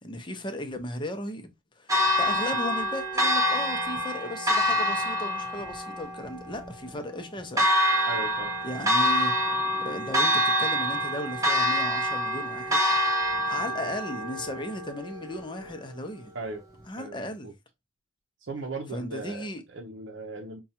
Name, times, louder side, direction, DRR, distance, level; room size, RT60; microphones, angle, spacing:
voice 1, 0.0-8.1 8.6-9.3 9.8-12.8 13.5-16.3 16.9-17.5 18.9-19.6, left 1 dB, 25° left, 0.7 m, -36 dB
Church bell, 1.9-15.9, equal, 15° right, 0.9 m, -26 dB
voice 2, 8.1-8.5 16.3-16.6 17.0-17.5 18.4-20.6, right 3 dB, 65° right, 0.7 m, -38 dB
5.3 x 2.3 x 2.8 m
head